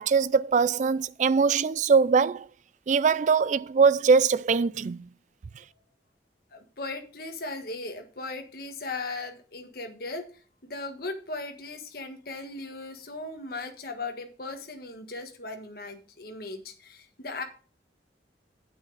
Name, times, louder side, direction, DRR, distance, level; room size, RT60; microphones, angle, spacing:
voice 1, 0.0-2.5 2.9-5.1, right 5 dB, 45° right, 0.3 m, -22 dB
voice 2, 6.5-10.3 10.6-17.4, left 3 dB, 55° left, 1.4 m, -37 dB
9.0 x 8.7 x 4.0 m
head